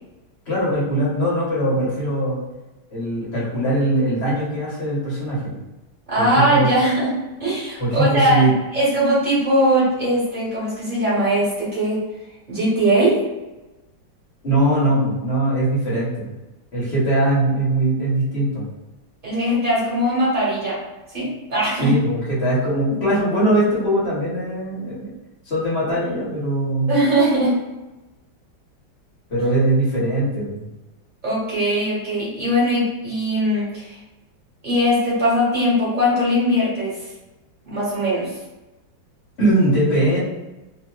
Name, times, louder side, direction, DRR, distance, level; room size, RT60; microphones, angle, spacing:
voice 1, 0.5-2.4 2.9-5.6 6.2-6.7 7.8-8.5 14.4-16.3 16.7-18.6 21.8-25.1 25.4-26.9 29.3-30.6 39.4-40.2, right 1 dB, 40° left, -8 dB, 1.2 m, -21 dB
voice 2, 6.1-8.4 8.7-12.0 12.5-13.2 19.2-20.8 21.1-21.9 26.9-27.6 31.2-34.0 34.6-36.9 37.6-38.3, equal, 25° right, -8 dB, 1.4 m, -20 dB
3.0 x 2.9 x 2.2 m, 1.0 s
omnidirectional pair, 2.0 m